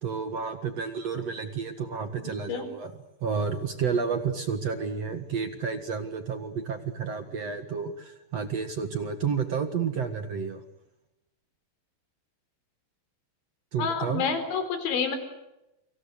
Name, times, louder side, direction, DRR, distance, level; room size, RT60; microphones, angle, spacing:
voice 1, 0.0-10.6 13.7-14.3, right 6 dB, 55° right, 8 dB, 1.8 m, -31 dB
voice 2, 2.2-2.6 13.8-15.2, left 6 dB, 70° left, 9 dB, 6.5 m, -29 dB
30.0 x 26.0 x 6.6 m, 0.91 s
omnidirectional pair, 5.5 m